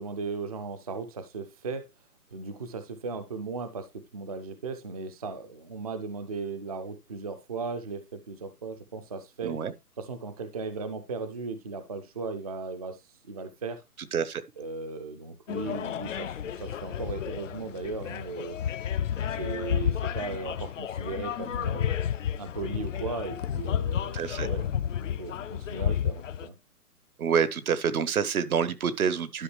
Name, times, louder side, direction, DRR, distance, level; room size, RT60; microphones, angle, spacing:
voice 1, 0.0-1.8 2.3-9.5 10.0-13.8 14.6-18.6 19.3-21.9 22.4-24.7 25.0-26.5, right 4 dB, 25° right, 0.5 m, -37 dB
voice 2, 14.1-14.4 24.1-24.5 27.2-29.4, right 7 dB, 65° right, 1.1 m, -27 dB
sound 1, 15.5-26.5, left 9 dB, 55° left, 0.6 m, -31 dB
11.5 x 5.0 x 3.2 m
hypercardioid pair, 150°, 46 cm